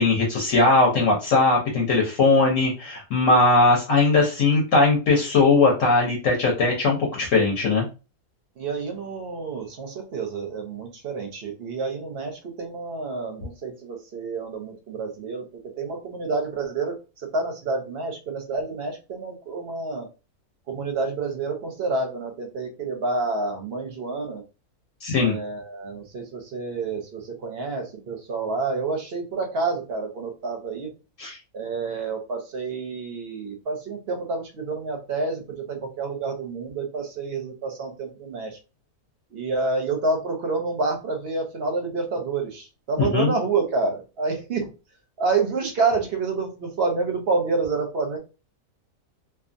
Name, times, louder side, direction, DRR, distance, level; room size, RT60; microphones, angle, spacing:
voice 1, 0.0-7.9 25.0-25.4 31.2-31.4 43.0-43.3, left 3 dB, 65° left, -1 dB, 1.0 m, -19 dB
voice 2, 8.6-15.4 15.8-17.0 17.3-20.1 20.7-24.4 25.2-30.9 31.5-38.6 39.3-44.7 45.2-48.2, right 3 dB, 55° right, 4 dB, 0.7 m, -28 dB
2.7 x 2.3 x 2.5 m, 0.31 s
omnidirectional pair, 1.6 m